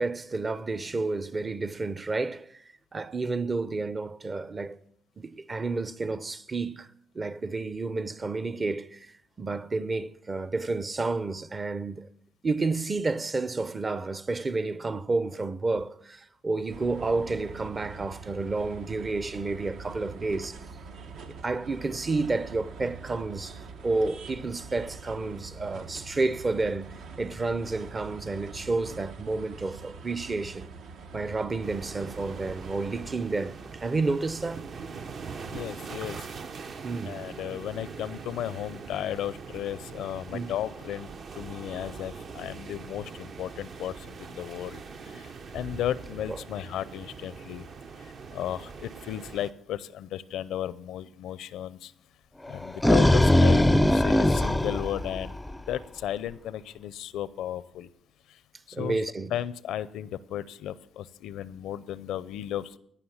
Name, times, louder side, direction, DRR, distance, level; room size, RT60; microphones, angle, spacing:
voice 1, 0.0-2.6 2.9-4.8 5.2-6.9 7.1-9.0 9.4-12.1 12.4-20.6 21.4-23.5 23.8-26.9 27.2-30.7 31.1-34.6 36.8-37.2 40.3-40.5 46.3-46.4 58.7-59.3, right 3 dB, 30° right, 0.7 m, -30 dB
sound 1, 16.7-33.2, right 4 dB, 75° right, 1.1 m, -44 dB
sound 2, 31.6-49.5, right 5 dB, 55° right, 0.9 m, -42 dB
voice 2, 35.5-36.2 37.0-44.8 45.1-45.3 45.5-47.7 48.3-51.9 52.5-55.4 55.7-57.9 58.8-59.0 59.3-62.8, left 11 dB, 85° left, 0.5 m, -34 dB
sound 3, 52.5-55.7, left 1 dB, 10° left, 0.4 m, -21 dB
17.0 x 5.9 x 7.2 m
cardioid pair, 90°, 0 cm